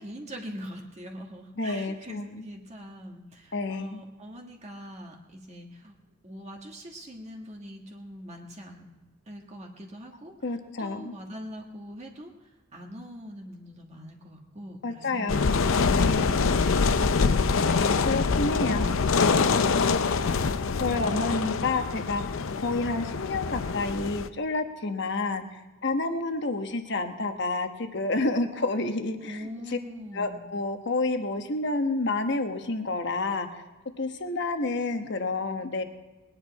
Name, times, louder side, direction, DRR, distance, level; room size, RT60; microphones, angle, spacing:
voice 1, 0.0-5.9 6.2-8.9 9.3-15.7 16.0-18.2 18.5-18.7 19.4-21.3 29.2-30.5, equal, 35° right, 1 dB, 1.5 m, -43 dB
voice 2, 1.6-2.4 3.5-4.0 10.4-11.1 14.8-15.5 16.0-16.4 18.0-20.0 20.8-29.5 30.1-33.6 34.0-35.8, left 3 dB, 60° left, 7 dB, 1.1 m, -29 dB
sound 1, 15.3-24.3, left 4 dB, 75° left, 0.6 m, -25 dB
20.5 x 10.0 x 4.6 m, 1.2 s
head